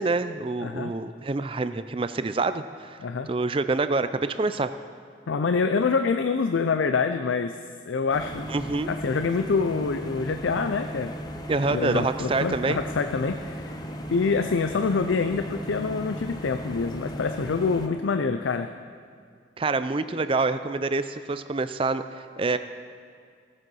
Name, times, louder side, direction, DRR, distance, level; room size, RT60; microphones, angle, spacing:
voice 1, 0.0-3.0 3.3-4.7 8.5-8.9 11.5-12.8 19.6-22.6, right 3 dB, 30° right, 11 dB, 0.4 m, -26 dB
voice 2, 0.6-0.9 3.0-3.3 5.3-8.5 8.9-11.1 11.7-13.8 14.1-18.7, left 4 dB, 85° left, 8 dB, 0.5 m, -26 dB
sound 1, 8.1-17.9, equal, 20° left, 0.8 m, -36 dB
17.0 x 7.5 x 6.2 m, 2.2 s
head